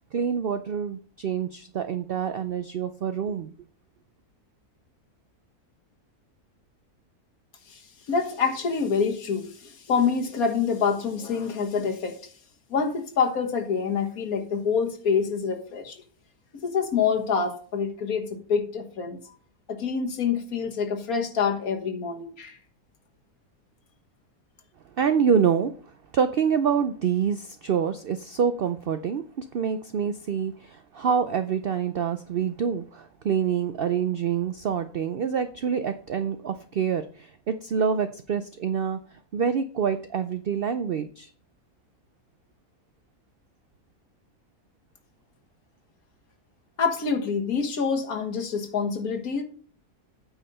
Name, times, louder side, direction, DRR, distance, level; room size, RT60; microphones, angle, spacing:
voice 1, 0.1-3.5 25.0-39.0 39.3-41.3, right 7 dB, 90° right, 10 dB, 0.5 m, -26 dB
voice 2, 8.1-12.2 12.7-16.0 16.6-19.2 19.7-22.6 46.8-49.4, left 6 dB, 65° left, 4 dB, 1.8 m, -26 dB
8.8 x 4.9 x 5.4 m, 0.44 s
omnidirectional pair, 1.6 m